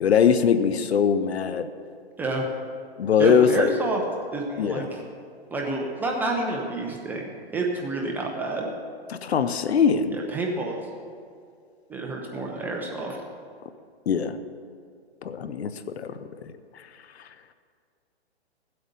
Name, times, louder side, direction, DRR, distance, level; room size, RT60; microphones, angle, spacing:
voice 1, 0.0-1.7 3.0-3.7 4.6-4.8 9.1-10.1 14.1-14.4 15.2-16.2 16.4-16.5, left 7 dB, 70° left, 11 dB, 0.9 m, -22 dB
voice 2, 3.2-4.0 4.3-5.0 5.5-8.7 10.1-10.8 11.9-13.2, right 2 dB, 5° right, -1 dB, 0.6 m, -28 dB
15.5 x 8.0 x 5.3 m, 2.2 s
hypercardioid pair, 145°, 33 cm